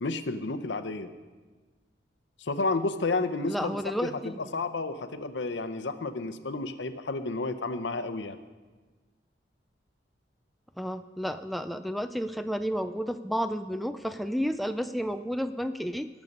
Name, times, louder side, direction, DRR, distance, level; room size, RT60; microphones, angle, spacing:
voice 1, 0.0-1.1 2.4-3.8 4.0-4.1 4.5-8.4, left 3 dB, 80° left, 11 dB, 0.7 m, -31 dB
voice 2, 3.5-4.6 10.8-16.1, equal, ahead, 8 dB, 0.3 m, -31 dB
18.5 x 7.3 x 5.4 m, 1.4 s
head